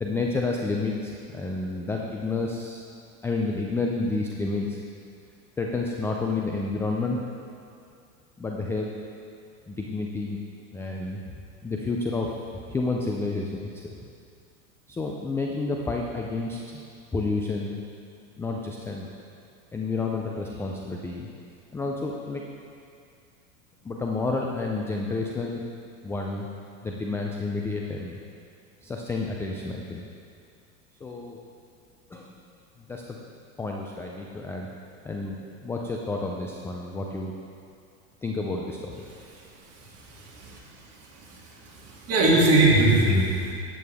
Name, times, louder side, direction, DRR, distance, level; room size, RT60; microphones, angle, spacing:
voice 1, 0.0-2.8 3.2-4.8 5.6-7.2 8.4-8.9 9.7-10.4 10.7-11.3 11.6-13.9 14.9-16.8 17.1-17.8 18.4-19.1 19.7-21.3 21.7-22.4 23.8-25.6 26.0-26.5 26.8-28.2 28.8-30.1 31.0-31.4 32.1-32.3 32.8-33.2 33.6-34.7 35.0-35.3 35.6-37.3 38.2-39.3, left 3 dB, 5° left, 0 dB, 0.3 m, -30 dB
voice 2, 39.7-40.9 41.1-43.5, right 2 dB, 35° right, -4 dB, 2.5 m, -22 dB
11.0 x 8.5 x 3.5 m, 2.4 s
hypercardioid pair, 105°, 42 cm